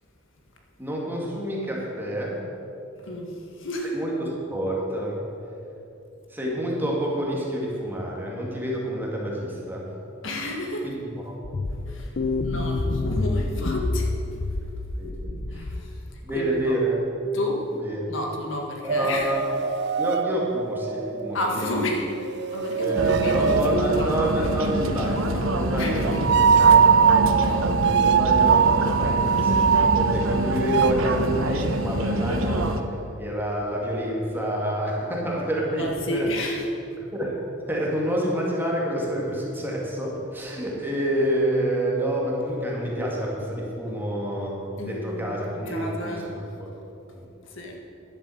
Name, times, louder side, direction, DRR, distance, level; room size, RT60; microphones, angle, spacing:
voice 1, 0.8-2.4 3.9-5.2 6.3-9.9 10.8-10.9 15.0-15.6 16.2-17.0 17.8-18.1 18.8-19.4 20.0-21.7 22.8-32.7 33.2-36.3 37.1-37.4 37.6-44.5 44.8-46.3 46.6-46.7 47.1-47.2, equal, 10° right, -3 dB, 2.1 m, -28 dB
voice 2, 3.0-3.9 10.2-10.9 11.7-12.2 12.4-14.4 15.5-16.8 17.3-17.7 18.1-19.3 21.3-22.1 22.4-24.2 24.8-24.9 25.4-25.5 25.8-26.2 27.5-27.6 35.8-36.7 43.9-44.0 44.8-46.3 47.4-47.8, left 1 dB, 70° left, 1 dB, 1.7 m, -31 dB
sound 1, 11.4-16.1, left 2 dB, 55° left, 0.6 m, -28 dB
sound 2, 18.9-21.8 22.1-24.6 26.1-30.9, right 7 dB, 55° right, 0.4 m, -21 dB
sound 3, 23.0-32.8, right 1 dB, 90° right, 0.8 m, -26 dB
10.5 x 7.6 x 7.9 m, 2.8 s
head